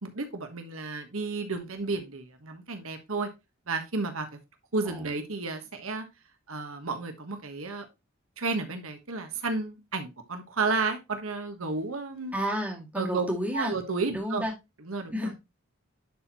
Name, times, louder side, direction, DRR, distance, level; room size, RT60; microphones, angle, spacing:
voice 1, 0.0-3.3 3.7-4.3 4.7-6.0 6.5-7.9 8.4-12.4 13.0-13.3 13.5-14.4 14.8-15.1, right 3 dB, 85° right, 6 dB, 1.4 m, -32 dB
voice 2, 12.3-13.7 14.1-14.5 15.1-15.3, equal, 5° right, -1 dB, 2.2 m, -31 dB
11.0 x 4.5 x 3.0 m, 0.23 s
head